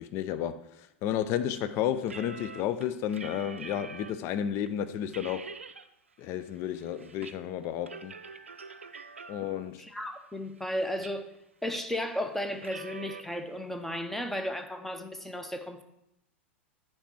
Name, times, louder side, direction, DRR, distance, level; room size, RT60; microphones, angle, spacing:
voice 1, 0.0-5.5 6.2-8.1 9.3-9.8, left 10 dB, 40° left, 0.5 m, -32 dB
sound 1, 2.0-4.3 4.7-4.8 5.1-5.9 6.2-7.4 7.6-9.7 10.2-11.4 11.7-12.0 12.5-13.2, right 5 dB, 85° right, 0.4 m, -45 dB
voice 2, 9.8-11.3 11.6-15.8, left 1 dB, 5° left, 0.8 m, -34 dB
10.5 x 4.7 x 4.3 m
figure-of-eight pair, 90°, 7 cm